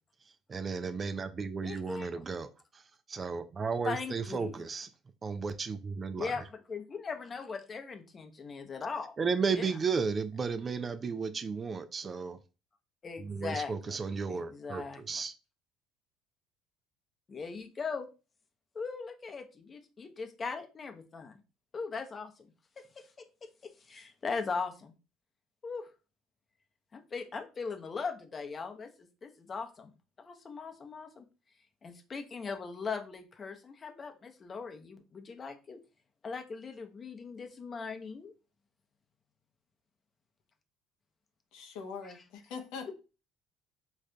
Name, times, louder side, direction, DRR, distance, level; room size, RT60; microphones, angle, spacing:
voice 1, 0.5-2.8 3.1-4.9 5.2-6.3 9.2-12.4 13.2-15.3, right 5 dB, 35° right, 0.4 m, -34 dB
voice 2, 1.6-2.1 3.8-4.5 6.2-9.2 9.5-9.7 13.0-14.0 14.3-15.0 17.3-18.1 18.7-21.4 21.7-23.1 23.4-24.9 25.6-25.9 26.9-29.9 30.2-31.3 31.8-35.8 36.2-38.3 42.0-42.1 42.9-43.0, left 5 dB, 35° left, 0.7 m, -39 dB
voice 3, 41.5-42.9, left 5 dB, 75° left, 0.7 m, -42 dB
5.0 x 2.4 x 2.2 m
supercardioid pair, 80°, 0 cm